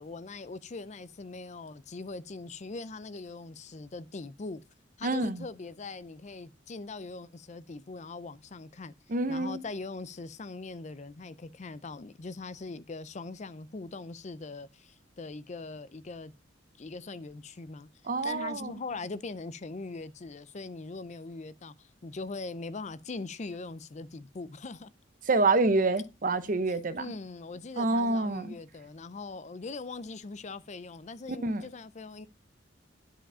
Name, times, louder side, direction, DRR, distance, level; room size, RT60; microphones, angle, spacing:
voice 1, 0.0-4.6 5.0-8.9 9.3-16.3 16.8-17.9 18.2-24.9 27.0-32.3, left 3 dB, 35° left, 0.5 m, -41 dB
voice 2, 5.0-5.4 9.1-9.6 18.0-18.7 25.3-27.1 27.8-28.5 31.4-31.6, right 3 dB, 45° right, 0.7 m, -27 dB
10.0 x 5.0 x 5.5 m
head